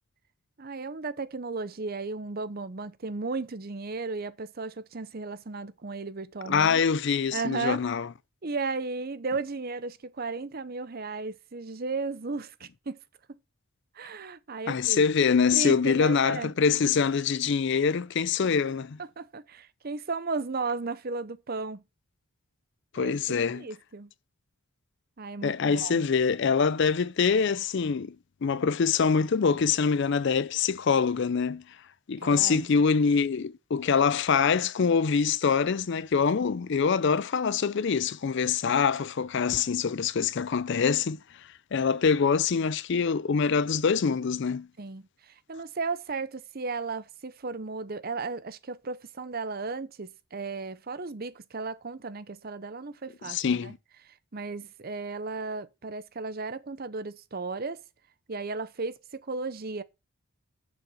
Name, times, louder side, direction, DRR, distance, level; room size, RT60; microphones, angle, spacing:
voice 1, 0.6-6.8 7.3-7.9 8.4-13.0 13.3-13.4 13.9-15.0 15.5-16.5 19.2-21.8 23.0-24.1 25.2-26.1 32.2-32.7 44.8-53.7 54.1-57.8 58.3-59.8, right 4 dB, 40° right, 0.7 m, -35 dB
voice 2, 6.5-8.1 14.7-19.0 22.9-23.7 25.4-28.2 28.4-31.6 32.1-41.2 41.7-44.7 53.3-53.8, left 6 dB, 50° left, 0.4 m, -24 dB
6.9 x 6.4 x 6.9 m
head